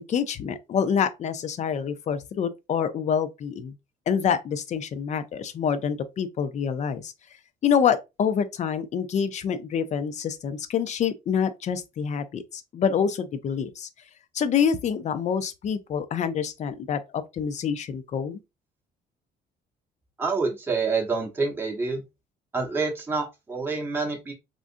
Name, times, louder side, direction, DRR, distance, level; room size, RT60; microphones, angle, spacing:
voice 1, 0.0-3.7 4.1-7.1 7.6-13.9 14.3-17.0 17.3-18.4, left 7 dB, 45° left, 0.5 m, -26 dB
voice 2, 20.2-22.0 22.5-24.3, right 4 dB, 15° right, 0.9 m, -27 dB
3.7 x 2.4 x 2.5 m
cardioid pair, 110°, 17 cm